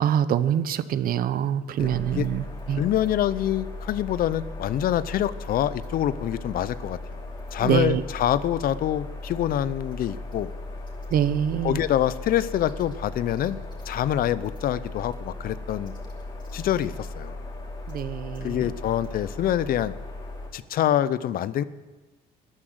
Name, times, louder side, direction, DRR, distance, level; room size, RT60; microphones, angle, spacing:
voice 1, 0.0-2.8 7.6-8.0 11.1-11.8 17.9-18.7, right 10 dB, 60° right, 15 dB, 0.8 m, -25 dB
sound 1, 1.8-20.5, left 2 dB, 25° left, 2.8 m, -37 dB
voice 2, 2.8-7.0 7.5-10.5 11.6-13.6 13.9-15.9 16.5-17.4 18.4-20.0 20.5-21.6, left 11 dB, 60° left, 17 dB, 0.6 m, -25 dB
13.0 x 10.0 x 7.9 m, 1.2 s
cardioid pair, 110°, 17 cm